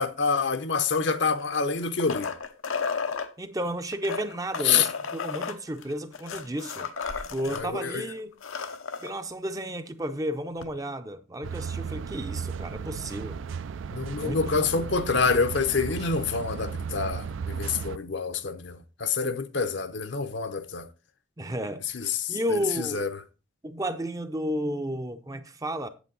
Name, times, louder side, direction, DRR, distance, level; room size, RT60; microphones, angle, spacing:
voice 1, 0.0-2.3 4.6-4.9 7.5-8.0 13.9-20.9 21.9-22.4 22.8-23.1, left 5 dB, 60° left, 0.7 m, -27 dB
sound 1, 1.4-3.3 3.9-7.6 8.0-8.1 8.3-9.1 10.6-10.7, left 5 dB, 90° left, 0.9 m, -33 dB
voice 2, 3.4-6.9 7.2-8.3 9.0-13.4 14.1-14.7 21.4-23.1 23.6-25.9, equal, 15° right, 0.5 m, -33 dB
sound 2, 11.4-18.0, right 6 dB, 70° right, 0.4 m, -35 dB
8.3 x 7.9 x 3.8 m
head